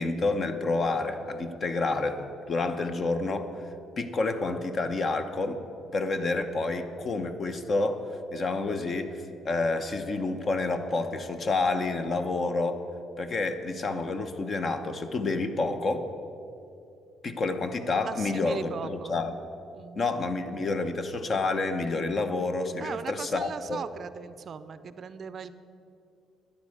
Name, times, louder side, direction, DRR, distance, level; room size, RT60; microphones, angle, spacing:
voice 1, 0.0-3.5 4.0-5.6 5.9-8.0 8.3-12.8 13.2-16.1 17.2-19.3 20.0-23.8, left 3 dB, 40° left, 8 dB, 0.9 m, -29 dB
voice 2, 18.0-19.2 19.7-20.1 22.8-25.5, right 6 dB, 45° right, 13 dB, 0.5 m, -39 dB
12.0 x 9.8 x 6.5 m, 2.7 s
cardioid pair, 110°, 0 cm